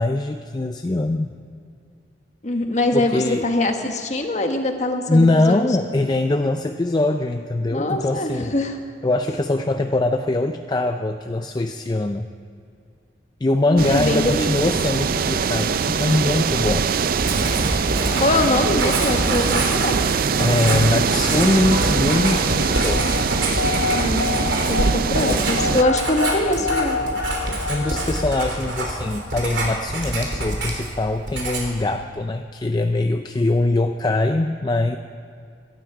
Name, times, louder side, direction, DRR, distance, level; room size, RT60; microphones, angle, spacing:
voice 1, 0.0-1.4 2.9-3.4 5.1-8.5 9.0-12.3 13.4-16.9 20.4-23.1 25.3-25.4 27.7-35.0, left 2 dB, 25° left, 7 dB, 0.4 m, -22 dB
voice 2, 2.4-5.6 7.7-8.8 13.7-14.6 18.2-20.0 24.0-27.0, left 1 dB, 40° left, 4 dB, 1.4 m, -23 dB
sound 1, 13.8-25.8, right 5 dB, 55° right, 0.4 m, -22 dB
Writing, 17.2-31.0 31.3-31.8, right 2 dB, 85° right, 3.2 m, -27 dB
sound 2, 20.4-29.4, left 4 dB, 65° left, 0.6 m, -29 dB
17.5 x 12.5 x 4.9 m, 2.4 s
head